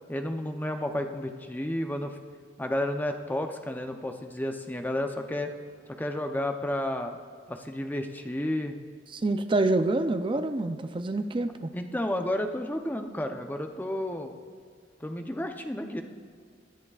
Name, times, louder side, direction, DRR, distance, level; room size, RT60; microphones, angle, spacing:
voice 1, 0.1-2.2 2.6-5.5 6.0-7.2 7.5-8.8 11.7-14.3 15.0-16.0, left 1 dB, 10° left, 5 dB, 0.7 m, -31 dB
voice 2, 9.1-11.7, right 2 dB, 30° right, 9 dB, 0.5 m, -27 dB
19.5 x 10.5 x 2.4 m, 2.1 s
head